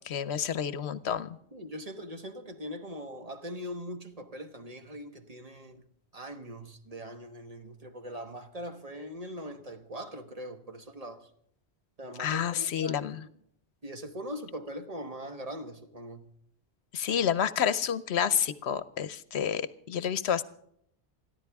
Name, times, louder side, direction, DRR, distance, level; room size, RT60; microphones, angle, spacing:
voice 1, 0.0-1.4 12.2-13.2 16.9-20.4, left 8 dB, 75° left, 1.0 m, -29 dB
voice 2, 1.5-5.8 6.1-11.3 12.0-13.1 13.8-16.2, equal, 35° right, 1.3 m, -41 dB
28.0 x 11.0 x 3.5 m
omnidirectional pair, 1.1 m